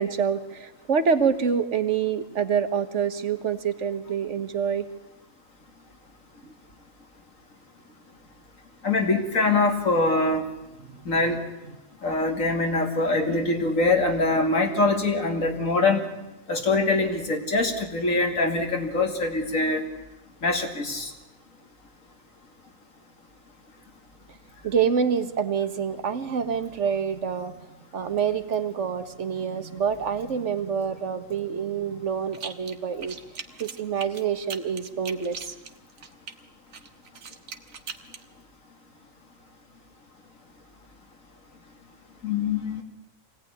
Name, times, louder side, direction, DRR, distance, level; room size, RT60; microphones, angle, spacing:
voice 1, 0.0-4.9 10.9-11.0 24.6-27.6 27.9-33.2 33.6-35.5, right 7 dB, 65° right, 10 dB, 1.7 m, -26 dB
voice 2, 8.8-10.4 11.0-11.4 12.0-16.1 16.5-19.8 20.4-21.1 42.2-42.8, left 3 dB, 80° left, 3 dB, 3.1 m, -23 dB
sound 1, 32.3-32.8 33.0-36.3 36.7-38.2, right 6 dB, 85° right, 1.8 m, -39 dB
24.5 x 17.5 x 9.8 m, 0.98 s
omnidirectional pair, 1.4 m